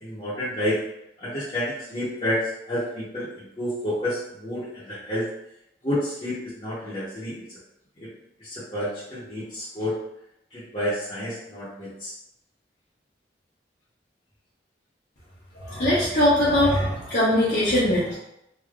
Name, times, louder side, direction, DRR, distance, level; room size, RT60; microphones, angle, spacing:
voice 1, 0.0-0.8 1.2-5.2 5.8-7.4 8.0-8.1 8.4-10.0 10.5-12.1, left 1 dB, 30° left, -13 dB, 0.9 m, -29 dB
voice 2, 15.5-18.2, left 1 dB, 70° left, -12 dB, 1.1 m, -21 dB
3.4 x 2.7 x 2.4 m, 0.80 s
head